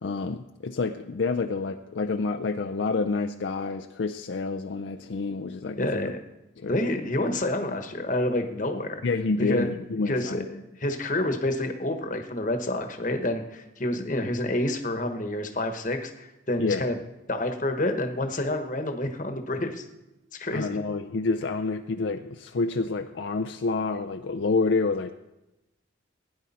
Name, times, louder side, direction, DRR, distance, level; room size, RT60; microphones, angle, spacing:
voice 1, 0.0-6.0 6.6-6.8 9.0-10.5 16.6-16.8 20.5-25.1, left 3 dB, 70° left, 6 dB, 0.5 m, -28 dB
voice 2, 5.8-6.2 6.7-9.0 9.4-9.7 10.1-17.0 17.3-19.8 20.3-20.8, left 1 dB, 40° left, 6 dB, 1.1 m, -28 dB
16.0 x 9.7 x 4.2 m, 0.97 s
head